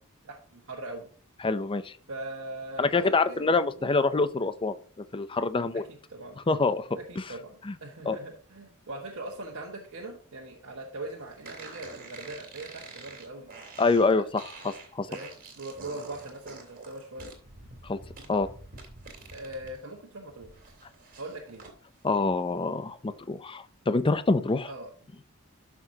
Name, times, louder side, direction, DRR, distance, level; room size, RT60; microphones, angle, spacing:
voice 1, 0.2-1.1 2.1-3.5 3.8-3.9 5.7-5.8 6.1-6.4 7.0-13.5 14.0-14.3 15.1-17.3 19.3-20.5 21.2-21.7 24.7-24.9, right 2 dB, 65° right, -1 dB, 1.4 m, -41 dB
voice 2, 1.4-2.0 2.8-4.7 5.1-5.8 6.5-6.9 7.6-7.8 8.1-8.2 13.8-14.2 14.6-15.1 17.8-18.0 18.3-18.5 22.0-24.7, left 3 dB, 25° left, 12 dB, 0.5 m, -25 dB
sound 1, 11.4-19.8 20.1-21.7, right 3 dB, 40° right, 2.6 m, -47 dB
12.5 x 6.0 x 2.8 m, 0.42 s
head